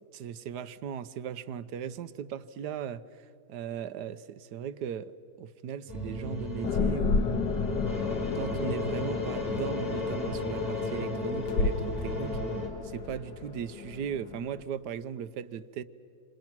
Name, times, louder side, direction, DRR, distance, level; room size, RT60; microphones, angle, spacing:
voice 1, 0.1-5.1 5.4-7.3 8.3-12.4 12.8-15.8, right 8 dB, 75° right, 1.3 m, -37 dB
sound 1, 5.9-12.7, left 2 dB, 20° left, 3.3 m, -34 dB
sound 2, 6.6-14.6, left 4 dB, 70° left, 1.6 m, -32 dB
27.5 x 27.0 x 6.0 m
omnidirectional pair, 1.8 m